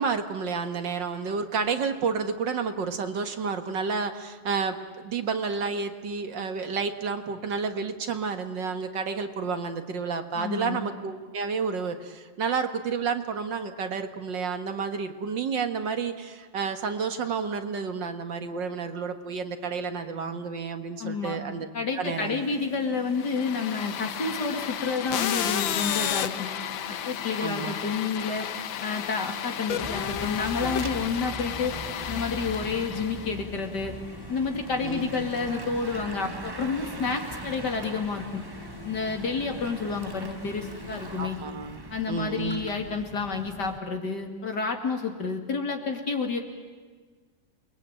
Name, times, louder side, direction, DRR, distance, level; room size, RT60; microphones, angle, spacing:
voice 1, 0.0-21.7 22.0-22.4 27.4-27.7 34.8-35.1 41.2-41.8 42.1-42.6, right 5 dB, 70° right, 7 dB, 2.3 m, -30 dB
voice 2, 10.4-10.8 21.0-21.4 21.7-26.5 26.9-28.5 28.8-31.8 32.1-33.9 34.3-38.4 38.8-41.4 41.9-46.4, left 4 dB, 60° left, 4 dB, 3.1 m, -30 dB
sound 1, 22.0-41.3, left 6 dB, 45° left, 2.4 m, -47 dB
sound 2, 23.2-33.4, left 9 dB, 80° left, 1.8 m, -32 dB
Bicycle / Mechanisms, 29.8-43.8, right 2 dB, 25° right, 0.5 m, -40 dB
29.0 x 21.5 x 9.0 m, 1.5 s
omnidirectional pair, 2.1 m